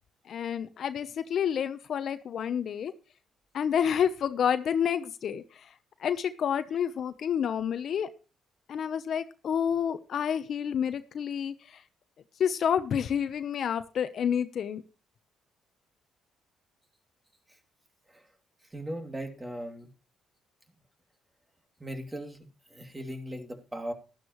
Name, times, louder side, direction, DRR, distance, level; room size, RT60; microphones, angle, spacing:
voice 1, 0.3-2.9 3.5-5.7 6.0-8.1 8.7-11.8 12.4-14.8, left 8 dB, 60° left, 12 dB, 0.9 m, -29 dB
voice 2, 18.7-19.9 21.8-23.9, right 1 dB, 15° right, 5 dB, 2.8 m, -38 dB
12.0 x 12.0 x 3.1 m, 0.32 s
cardioid pair, 85°, 0 cm